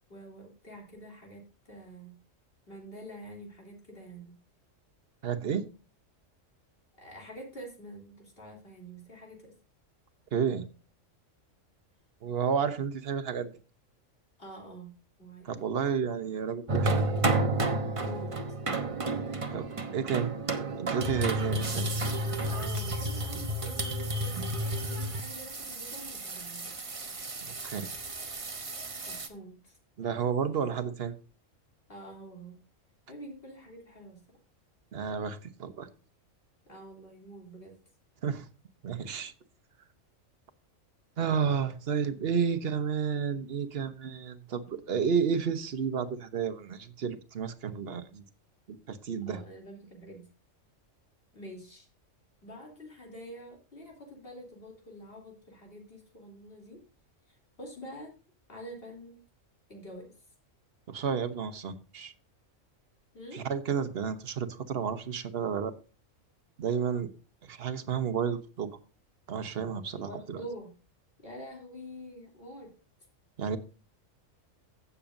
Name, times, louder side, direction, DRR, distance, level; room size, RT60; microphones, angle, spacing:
voice 1, 0.1-2.2 2.7-4.4 7.0-9.5 14.4-14.9 15.2-15.5 18.0-18.3 19.1-19.4 22.5-26.7 29.1-29.8 31.9-32.6 33.1-34.2 36.7-37.7 49.3-50.3 51.3-51.9 52.4-56.8 57.3-58.1 58.5-59.2 59.7-60.1 63.1-63.4 70.0-70.7 71.2-72.7, equal, 45° left, 3.2 m, -46 dB
voice 2, 5.2-5.7 10.3-10.7 12.2-13.5 15.4-17.1 19.5-20.3 20.8-21.9 27.4-27.9 30.0-31.2 34.9-35.9 38.2-38.5 38.8-39.3 41.2-48.2 48.7-49.4 60.9-62.1 63.3-65.7 66.6-67.1 67.4-68.7 69.3-70.4 73.4-73.6, right 7 dB, 50° right, 1.1 m, -31 dB
sound 1, 16.7-29.3, right 2 dB, 30° right, 0.9 m, -31 dB
15.5 x 7.1 x 2.6 m
omnidirectional pair, 1.3 m